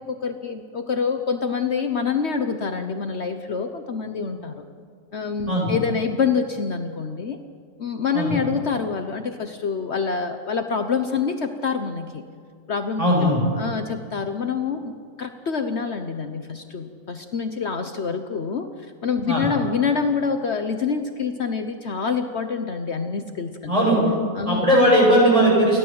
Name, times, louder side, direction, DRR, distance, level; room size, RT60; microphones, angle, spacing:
voice 1, 0.0-4.6 5.1-7.4 7.8-12.2 12.7-13.0 13.6-14.9 15.2-18.7 19.0-23.7 24.4-24.8, left 5 dB, 55° left, 7 dB, 1.2 m, -26 dB
voice 2, 13.0-13.4 19.3-19.4 23.7-24.1 24.4-25.8, equal, 25° right, -4 dB, 8.0 m, -18 dB
29.0 x 12.5 x 7.7 m, 2.2 s
omnidirectional pair, 1.4 m